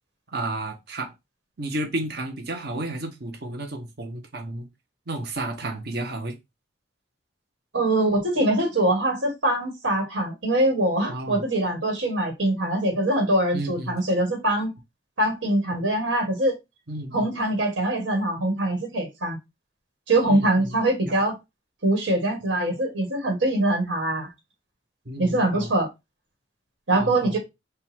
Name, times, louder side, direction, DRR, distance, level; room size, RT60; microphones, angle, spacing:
voice 1, 0.3-1.1 1.6-4.7 5.1-6.3 11.1-11.5 13.5-14.0 16.9-17.3 20.3-20.7 25.0-25.7 26.9-27.4, right 2 dB, 55° right, 1.1 m, -32 dB
voice 2, 7.7-14.7 15.2-16.5 17.1-19.4 20.1-21.4 21.8-24.3 25.2-25.9 26.9-27.4, right 1 dB, 85° right, 1.8 m, -23 dB
5.6 x 2.4 x 3.5 m
head